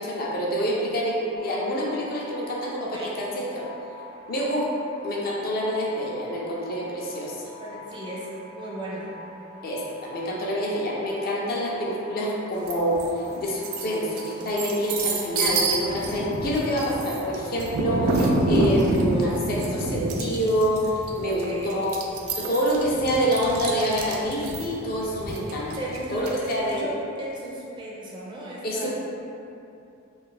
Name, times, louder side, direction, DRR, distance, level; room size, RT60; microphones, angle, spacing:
voice 1, 0.0-3.7 4.3-4.7 5.0-7.5 9.6-21.9 22.4-25.7 26.1-26.8 28.6-28.9, equal, 45° left, -4 dB, 0.4 m, -27 dB
sound 1, 1.4-19.7, left 1 dB, 90° left, 0.7 m, -45 dB
voice 2, 2.8-3.2 7.6-9.1 21.2-21.9 25.8-28.9, right 1 dB, 20° right, -5 dB, 0.4 m, -35 dB
sound 2, 12.7-13.1 13.5-26.7, right 2 dB, 90° right, 0.4 m, -27 dB
2.5 x 2.3 x 3.9 m, 2.7 s
head